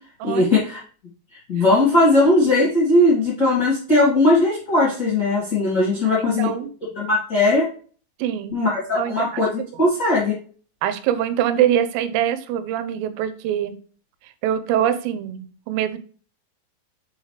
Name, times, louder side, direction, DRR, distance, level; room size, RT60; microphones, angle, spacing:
voice 1, 0.2-0.8 1.5-6.5 6.9-7.7 8.5-9.5 9.8-10.3, left 2 dB, 45° left, -7 dB, 1.3 m, -18 dB
voice 2, 6.0-6.7 8.2-8.6 9.0-9.3 9.6-9.9 10.8-13.8 14.4-16.0, right 10 dB, 85° right, 12 dB, 3.4 m, -24 dB
7.0 x 4.7 x 3.3 m, 0.41 s
omnidirectional pair, 5.9 m